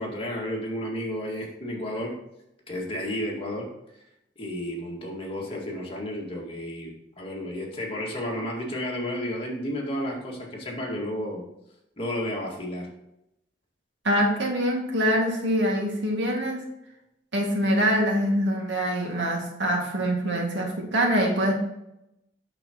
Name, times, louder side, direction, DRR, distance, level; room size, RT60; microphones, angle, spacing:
voice 1, 0.0-2.2 2.7-3.7 4.4-11.4 12.0-12.9, left 1 dB, 30° left, -2 dB, 2.0 m, -32 dB
voice 2, 14.0-16.6 17.3-21.5, equal, 90° right, 0 dB, 2.1 m, -24 dB
8.6 x 6.4 x 3.0 m, 0.85 s
head